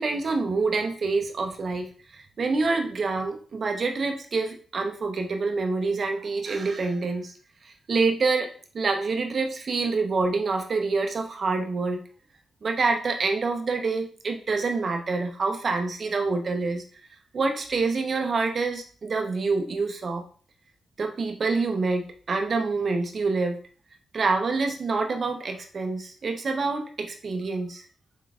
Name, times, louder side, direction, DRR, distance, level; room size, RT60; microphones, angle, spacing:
voice 1, 0.0-7.3 7.6-12.0 12.6-16.8 17.3-20.2 21.0-23.6 24.1-27.8, right 3 dB, 55° right, 4 dB, 0.9 m, -27 dB
4.7 x 3.8 x 2.4 m, 0.41 s
cardioid pair, 60°, 0 cm